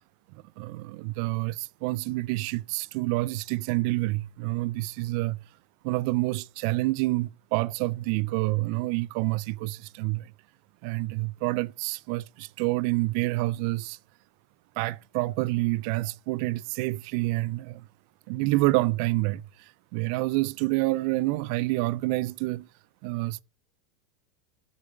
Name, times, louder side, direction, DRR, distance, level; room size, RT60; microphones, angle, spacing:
voice 1, 0.3-5.4 5.8-10.3 10.8-14.0 14.8-17.9 18.3-22.7 23.0-23.4, right 20 dB, 60° right, 0.4 m, -28 dB
8.1 x 6.6 x 7.5 m
hypercardioid pair, 110°, 3 cm